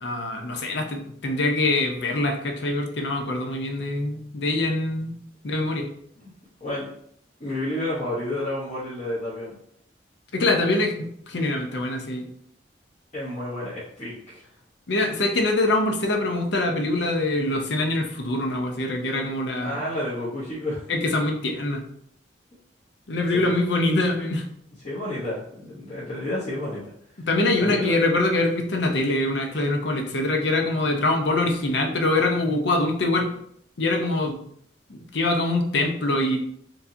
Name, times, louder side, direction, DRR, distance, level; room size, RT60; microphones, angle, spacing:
voice 1, 0.0-5.1 5.4-5.9 10.3-12.3 14.9-19.8 20.9-21.8 23.1-24.4 27.3-33.3 33.8-34.4 34.9-36.4, left 2 dB, 70° left, 3 dB, 0.7 m, -24 dB
voice 2, 6.6-6.9 7.4-9.6 13.1-14.4 19.6-20.8 23.3-23.5 24.8-26.8 27.6-27.9, left 1 dB, 40° left, -9 dB, 1.0 m, -30 dB
4.5 x 2.7 x 2.7 m, 0.67 s
head